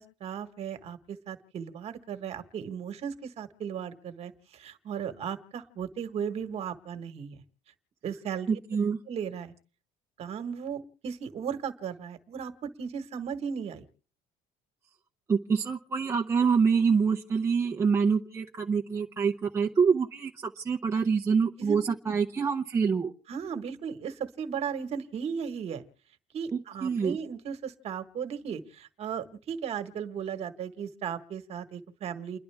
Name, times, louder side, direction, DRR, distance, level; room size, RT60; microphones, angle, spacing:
voice 1, 0.0-7.4 8.0-8.6 9.1-9.5 10.2-13.8 21.6-22.2 23.3-25.8 26.3-32.4, right 7 dB, 40° right, 8 dB, 1.5 m, -36 dB
voice 2, 8.5-9.0 15.3-23.1 26.5-27.2, right 5 dB, 15° right, 0 dB, 0.7 m, -26 dB
29.5 x 11.0 x 3.5 m, 0.43 s
cardioid pair, 170°, 17 cm